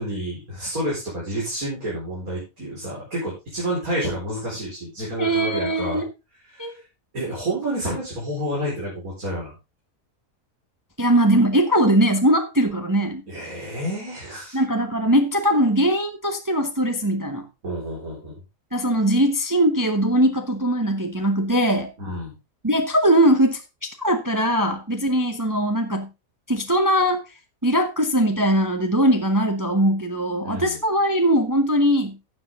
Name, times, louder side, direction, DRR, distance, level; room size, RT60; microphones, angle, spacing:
voice 1, 0.0-6.0 6.5-6.7 7.1-9.5 13.3-14.6 17.6-18.4 22.0-22.3 30.4-30.8, right 1 dB, 85° right, 5.0 m, -29 dB
voice 2, 5.2-6.1 6.6-6.7 11.0-13.2 14.5-17.5 18.7-21.9 22.6-26.1 26.5-27.2 27.6-32.1, right 1 dB, 15° right, 0.9 m, -20 dB
12.0 x 7.9 x 3.6 m
omnidirectional pair, 1.5 m